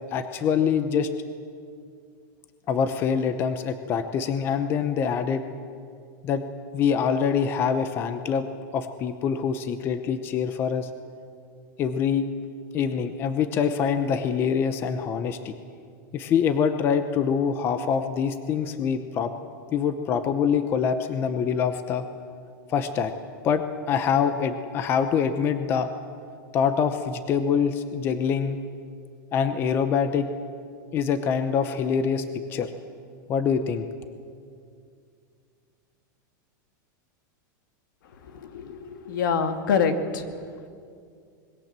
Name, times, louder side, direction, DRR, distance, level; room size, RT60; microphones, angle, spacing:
voice 1, 0.1-1.1 2.7-5.4 6.2-6.4 6.7-8.5 8.7-10.9 11.8-12.3 12.7-15.6 16.1-19.3 19.7-22.1 22.7-23.1 23.4-25.9 26.5-28.6 29.3-30.3 30.9-32.2 32.5-32.7 33.3-33.9, left 7 dB, 20° left, 10 dB, 0.8 m, -25 dB
voice 2, 38.3-40.2, left 6 dB, 75° left, 7 dB, 2.4 m, -26 dB
26.0 x 21.5 x 7.5 m, 2.3 s
supercardioid pair, 175°, 11 cm